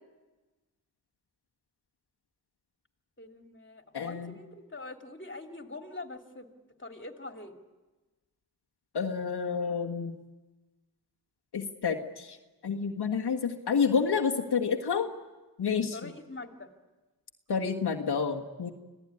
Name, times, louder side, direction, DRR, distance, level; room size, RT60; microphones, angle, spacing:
voice 1, 3.2-6.5 6.8-7.6 15.9-16.7, left 2 dB, 30° left, 4 dB, 3.0 m, -44 dB
voice 2, 3.9-4.3 8.9-10.2 11.5-12.4 12.6-15.1 15.6-16.1 17.5-18.7, left 6 dB, 90° left, 1 dB, 1.7 m, -29 dB
26.0 x 17.0 x 9.8 m, 1.2 s
cardioid pair, 45°, 38 cm